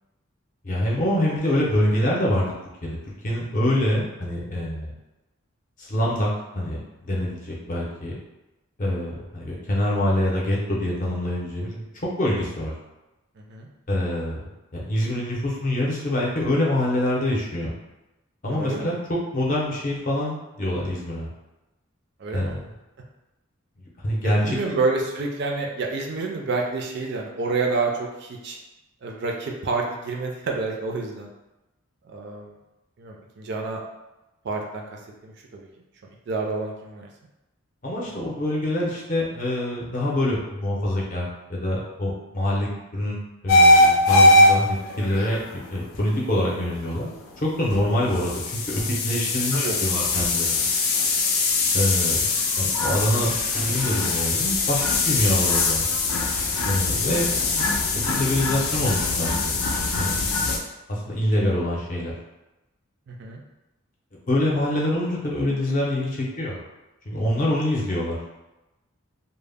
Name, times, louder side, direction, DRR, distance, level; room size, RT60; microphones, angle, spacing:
voice 1, 0.6-2.5 2.8-3.0 3.2-4.9 5.8-8.2 8.8-11.8 12.2-12.7 13.9-14.4 14.7-17.7 18.4-21.3 22.3-22.8 24.0-24.8 37.8-45.4 45.7-47.1 47.4-50.7 51.7-52.3 52.6-55.9 56.6-57.6 58.1-59.5 60.0-60.2 60.9-62.2 64.3-66.6 67.1-68.2, left 1 dB, 35° left, -4 dB, 0.5 m, -25 dB
voice 2, 18.5-18.9 22.2-22.6 24.2-28.6 29.0-31.3 32.1-32.5 33.0-33.8 34.4-34.8 35.2-35.7 36.3-37.1 38.1-38.2 49.5-49.8 60.2-60.5 63.1-63.4, right 3 dB, 50° right, 0 dB, 0.4 m, -28 dB
sound 1, 43.5-60.6, left 2 dB, 85° left, 0.4 m, -22 dB
2.0 x 2.0 x 3.4 m, 1.0 s
head